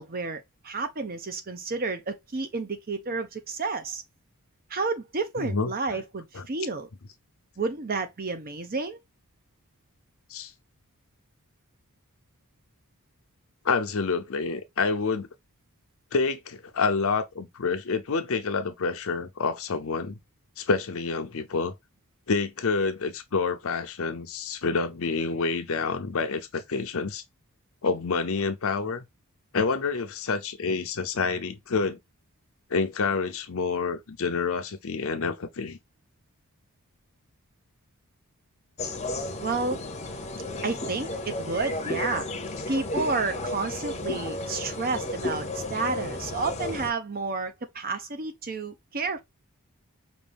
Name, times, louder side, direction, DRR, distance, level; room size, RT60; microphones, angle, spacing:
voice 1, 0.0-4.0 4.7-6.9 7.6-9.0 39.4-39.8 40.6-42.3 42.7-49.2, right 4 dB, 40° right, 0.7 m, -31 dB
voice 2, 5.4-5.7 6.3-6.5 10.3-10.5 13.6-15.3 16.1-20.2 20.6-21.7 22.3-27.2 27.8-29.0 29.5-32.0 32.7-35.8 40.5-40.7, left 4 dB, 65° left, 0.7 m, -28 dB
sound 1, 38.8-46.9, left 2 dB, 30° left, 0.8 m, -33 dB
5.3 x 2.6 x 3.4 m
head